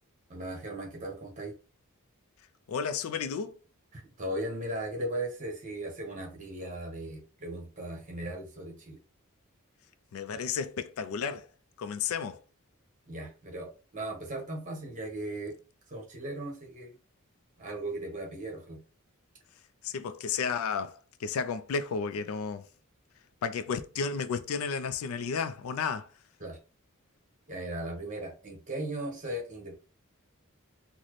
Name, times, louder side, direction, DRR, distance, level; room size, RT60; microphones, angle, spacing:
voice 1, 0.3-1.5 3.9-9.0 13.1-15.5 15.9-17.0 17.6-18.8 26.4-26.6 27.5-29.7, right 1 dB, 35° right, 1.0 m, -37 dB
voice 2, 2.7-3.6 10.1-11.5 11.8-12.4 19.8-22.7 23.4-26.1, left 6 dB, 70° left, 0.3 m, -32 dB
4.0 x 2.0 x 3.1 m
head